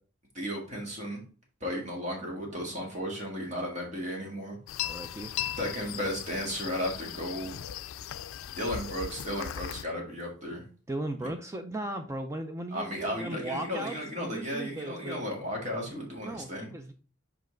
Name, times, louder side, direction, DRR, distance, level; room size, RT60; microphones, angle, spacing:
voice 1, 0.3-1.2 1.6-4.6 5.6-7.6 8.6-10.6 12.7-16.7, equal, 35° right, 0 dB, 1.9 m, -34 dB
sound 1, 4.7-9.8, left 11 dB, 85° left, 0.4 m, -38 dB
voice 2, 4.8-5.3 10.9-15.2 16.2-16.9, right 1 dB, 15° right, 6 dB, 0.5 m, -37 dB
5.4 x 5.0 x 3.8 m, 0.39 s
head